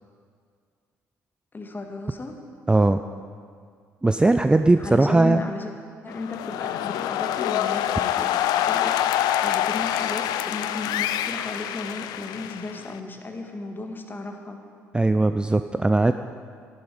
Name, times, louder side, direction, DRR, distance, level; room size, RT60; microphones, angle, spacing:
voice 1, 1.5-2.4 4.8-5.7 6.0-8.4 8.6-14.6, left 3 dB, 25° left, 4 dB, 1.6 m, -34 dB
voice 2, 2.7-3.0 4.0-5.4 14.9-16.1, right 2 dB, 10° right, 9 dB, 0.4 m, -19 dB
sound 1, 6.1-13.0, left 12 dB, 60° left, 0.4 m, -26 dB
14.0 x 11.0 x 4.9 m, 2.1 s
figure-of-eight pair, 45°, 8 cm